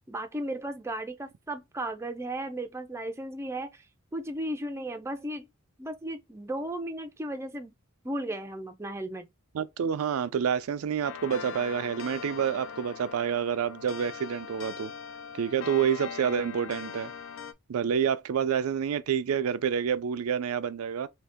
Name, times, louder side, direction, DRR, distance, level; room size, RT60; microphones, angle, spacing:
voice 1, 0.1-3.8 4.1-5.5 5.8-7.7 8.0-9.3, right 1 dB, 15° right, 0.4 m, -35 dB
voice 2, 9.5-14.9 15.4-17.1 17.7-21.1, right 7 dB, 90° right, 0.4 m, -28 dB
sound 1, 11.0-17.5, left 7 dB, 65° left, 0.4 m, -41 dB
2.8 x 2.7 x 3.5 m
head